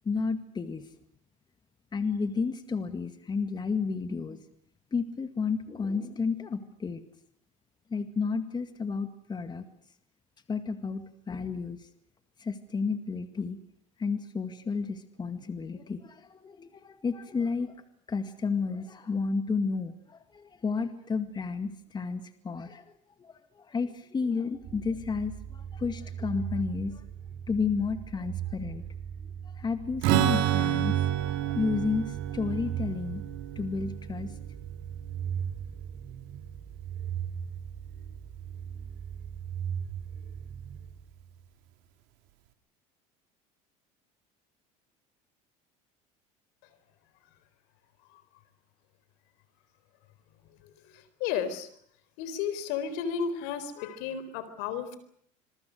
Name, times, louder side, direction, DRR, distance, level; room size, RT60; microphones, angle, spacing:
voice 1, 0.1-0.9 1.9-4.4 4.9-7.0 7.9-9.7 10.5-11.9 12.4-13.6 14.0-17.8 18.1-27.0 27.5-28.8 29.4-33.2 33.6-34.3, left 5 dB, 25° left, 9 dB, 2.0 m, -32 dB
sound 1, 24.6-41.4, right 8 dB, 55° right, 3.3 m, -38 dB
Strum, 30.0-35.6, right 12 dB, 70° right, 2.9 m, -30 dB
voice 2, 50.9-51.7 52.2-55.0, left 7 dB, 75° left, 13 dB, 4.2 m, -33 dB
26.5 x 23.0 x 6.5 m, 0.65 s
supercardioid pair, 95°, 18 cm